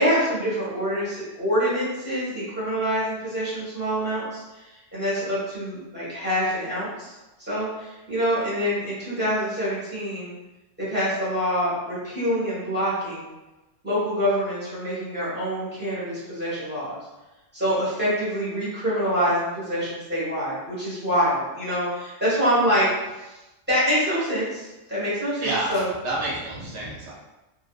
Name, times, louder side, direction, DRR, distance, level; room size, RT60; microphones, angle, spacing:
voice 1, 0.0-4.4 4.9-10.3 10.8-13.3 13.8-17.0 17.5-22.9 23.2-23.3 23.7-25.8, equal, 10° right, -10 dB, 1.0 m, -25 dB
voice 2, 25.4-27.1, right 2 dB, 65° right, -6 dB, 1.1 m, -29 dB
2.6 x 2.6 x 2.3 m, 1.0 s
omnidirectional pair, 1.3 m